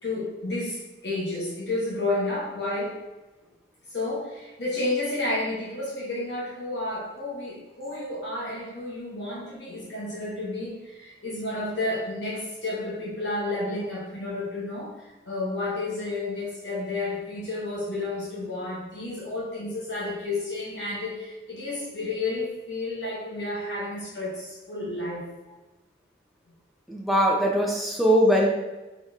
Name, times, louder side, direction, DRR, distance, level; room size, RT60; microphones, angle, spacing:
voice 1, 0.0-3.0 3.9-25.3, left 2 dB, 65° left, -7 dB, 1.1 m, -31 dB
voice 2, 26.9-28.5, equal, ahead, -2 dB, 0.5 m, -21 dB
3.9 x 3.9 x 2.4 m, 1.1 s
head